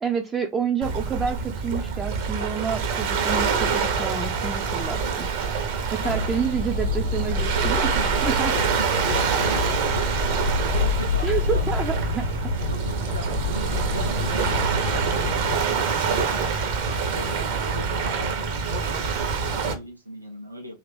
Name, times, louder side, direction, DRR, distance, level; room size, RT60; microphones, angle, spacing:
voice 1, 0.0-5.5 5.9-8.6 11.2-12.5, right 6 dB, 20° right, 0.3 m, -29 dB
Waves surf, 0.8-19.7, right 5 dB, 50° right, 0.7 m, -26 dB
sound 1, 6.0-15.6, left 4 dB, 90° left, 0.6 m, -28 dB
voice 2, 9.3-11.6 11.9-12.1 12.7-15.1 15.4-20.8, equal, 85° right, 0.6 m, -39 dB
2.8 x 2.4 x 3.4 m
figure-of-eight pair, 90°, 0 cm